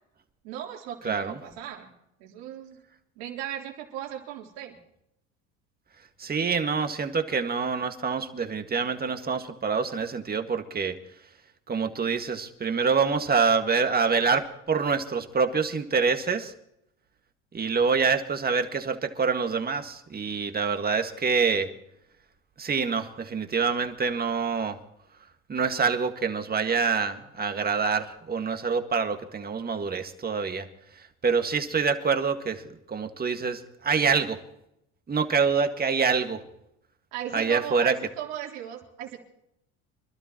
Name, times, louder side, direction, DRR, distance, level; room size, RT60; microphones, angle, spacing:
voice 1, 0.4-1.9 2.2-2.8 3.2-4.8 37.1-39.2, right 11 dB, 75° right, 1 dB, 3.6 m, -37 dB
voice 2, 1.0-1.4 6.2-11.0 11.7-16.5 17.5-21.7 22.6-24.8 25.5-30.7 31.0-34.4 35.1-36.4 37.3-37.9, right 5 dB, 25° right, 7 dB, 1.9 m, -26 dB
26.5 x 12.5 x 3.1 m, 0.78 s
supercardioid pair, 85°, 34 cm